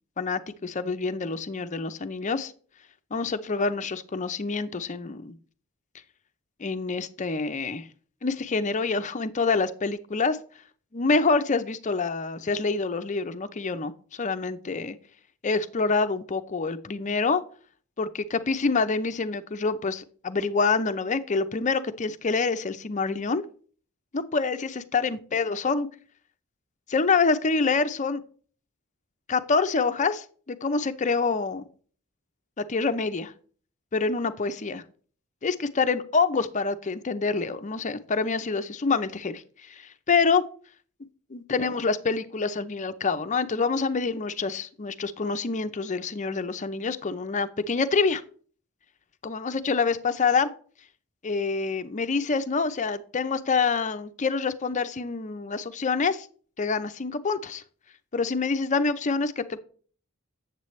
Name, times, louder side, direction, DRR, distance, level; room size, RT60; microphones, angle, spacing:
voice 1, 0.2-2.5 3.1-5.4 6.6-7.9 8.2-10.4 10.9-15.0 15.4-17.4 18.0-23.4 24.1-25.9 26.9-28.2 29.3-31.7 32.6-33.3 33.9-34.8 35.4-40.4 41.3-48.2 49.2-50.5 51.2-56.3 56.6-57.6 58.1-59.6, left 4 dB, 35° left, 11 dB, 0.6 m, -26 dB
8.5 x 7.4 x 3.2 m, 0.43 s
head